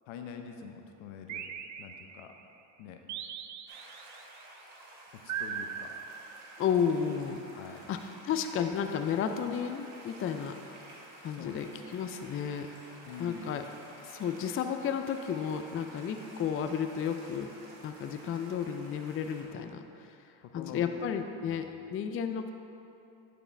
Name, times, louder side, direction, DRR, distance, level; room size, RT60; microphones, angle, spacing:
voice 1, 0.1-1.5 1.8-2.3 2.8-3.0 5.2-5.9 7.5-7.8 11.3-11.6 13.1-13.5 19.5-19.7 20.4-20.9 21.5-21.6, left 7 dB, 75° left, 5 dB, 0.8 m, -45 dB
sound 1, 1.3-2.4 3.1-4.2 5.3-6.8, right 8 dB, 40° right, 0.4 m, -40 dB
sound 2, 3.7-19.4, right 1 dB, 85° right, 1.7 m, -52 dB
voice 2, 6.6-7.4 7.7-10.9 11.2-12.7 13.2-13.7 14.0-17.5 17.8-22.5, left 7 dB, 30° left, 7 dB, 0.4 m, -33 dB
11.0 x 5.0 x 3.3 m, 2.8 s
supercardioid pair, 80°, 46 cm